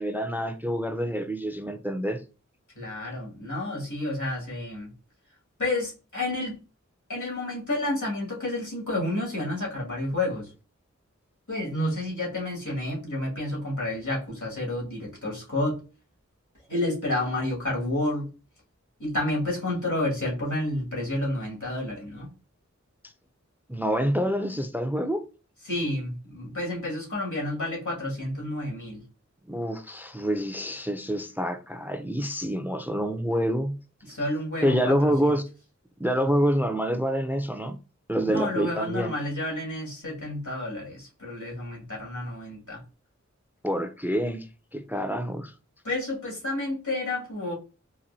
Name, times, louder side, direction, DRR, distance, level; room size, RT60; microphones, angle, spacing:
voice 1, 0.0-2.2 23.7-25.2 29.5-33.7 34.6-35.5 36.0-37.8 38.1-39.2 43.6-45.5, equal, 5° right, 0.4 m, -27 dB
voice 2, 2.8-4.9 5.6-6.6 7.1-10.5 11.5-15.8 16.7-18.3 19.0-22.3 25.6-29.0 34.1-35.1 38.2-42.8 45.8-47.5, left 1 dB, 80° left, 1.9 m, -30 dB
4.2 x 2.6 x 2.6 m
wide cardioid pair, 45°, 30 cm